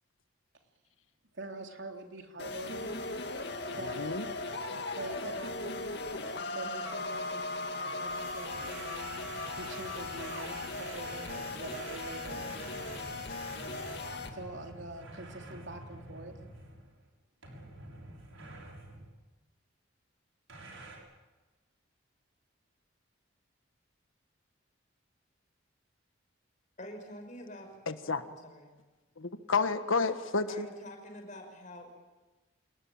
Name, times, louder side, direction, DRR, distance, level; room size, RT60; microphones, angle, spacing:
voice 1, 1.3-3.0 3.8-4.2 4.6-6.0 6.5-9.3 9.5-12.5 14.3-16.4, right 2 dB, 65° right, 3 dB, 3.4 m, -45 dB
sound 1, 2.4-14.3, left 2 dB, 55° left, 2.4 m, -38 dB
sound 2, 8.1-14.1, right 4 dB, 45° right, 4.7 m, -53 dB
sound 3, 8.5-17.0 17.4-19.1 20.5-21.0, right 2 dB, 85° right, 6.7 m, -48 dB
voice 2, 26.8-27.7 28.0-28.7 30.5-31.9, left 1 dB, 40° left, 4 dB, 6.1 m, -46 dB
voice 3, 27.9-28.2 29.2-30.7, left 4 dB, 85° left, 10 dB, 1.5 m, -30 dB
27.5 x 20.0 x 8.8 m, 1.2 s
head